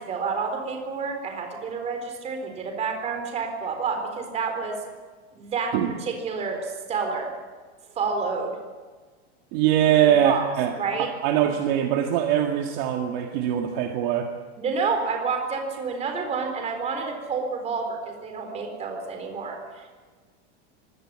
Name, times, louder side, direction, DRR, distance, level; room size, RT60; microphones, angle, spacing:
voice 1, 0.0-4.8 5.3-5.7 6.0-7.3 7.9-8.5 10.1-10.5 10.8-11.1 14.6-20.0, right 5 dB, 20° right, 4 dB, 4.1 m, -29 dB
voice 2, 9.5-14.3, right 10 dB, 40° right, 3 dB, 1.9 m, -22 dB
23.5 x 17.5 x 8.9 m, 1.4 s
supercardioid pair, 165°, 34 cm